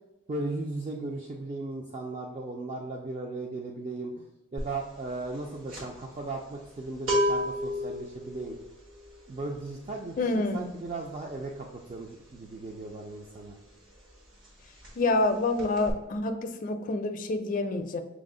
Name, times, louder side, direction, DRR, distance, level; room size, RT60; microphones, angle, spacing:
voice 1, 0.3-4.2 4.5-8.6 9.3-13.6, right 2 dB, 35° right, 0 dB, 0.3 m, -37 dB
sound 1, 4.6-4.8 5.1-13.7 14.0-14.2 14.4-15.3 15.6-15.9, equal, 75° right, 1.5 m, -33 dB
voice 2, 10.2-10.7 14.9-18.0, left 2 dB, 40° left, 6 dB, 0.4 m, -27 dB
5.9 x 2.0 x 3.7 m, 1.0 s
head